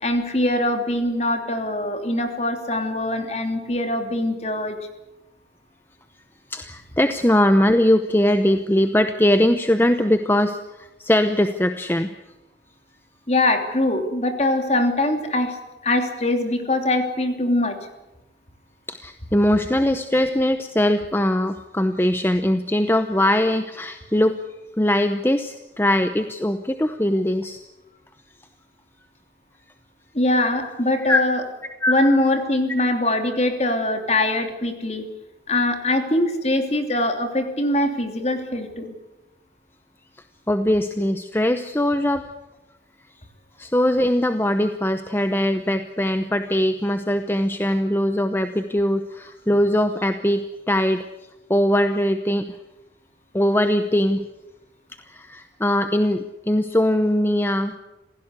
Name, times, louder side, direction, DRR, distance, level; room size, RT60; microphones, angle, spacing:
voice 1, 0.0-4.8 13.3-15.6 15.8-17.8 30.1-31.4 31.9-35.0 35.5-38.9, left 1 dB, 35° left, 5 dB, 2.9 m, -22 dB
voice 2, 6.5-12.1 18.9-24.4 24.8-27.6 31.1-31.2 31.8-31.9 40.5-42.2 43.6-51.1 51.5-52.5 53.3-54.2 55.0-57.7, left 1 dB, 10° left, 8 dB, 0.8 m, -21 dB
26.5 x 16.5 x 8.2 m, 1.0 s
head